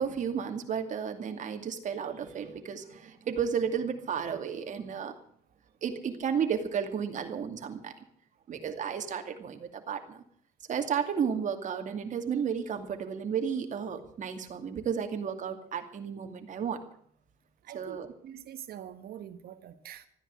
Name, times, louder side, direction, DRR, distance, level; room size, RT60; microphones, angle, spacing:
voice 1, 0.0-5.1 5.8-7.9 8.5-10.2 10.7-16.8 17.7-18.1, right 7 dB, 45° right, 6 dB, 2.5 m, -33 dB
voice 2, 17.6-20.1, right 10 dB, 65° right, 10 dB, 1.7 m, -45 dB
14.0 x 10.0 x 9.6 m, 0.64 s
cardioid pair, 110°, 17 cm